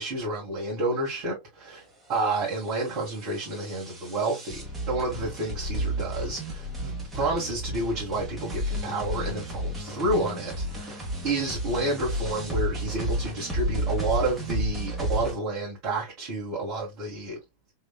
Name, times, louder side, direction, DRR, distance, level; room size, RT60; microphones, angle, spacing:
voice 1, 0.0-1.8 2.1-17.4, right 2 dB, 45° right, 1.7 m, -30 dB
sound 1, 2.1-15.3, right 1 dB, 10° right, 1.6 m, -32 dB
4.0 x 3.0 x 2.3 m
figure-of-eight pair, 90°, 0 cm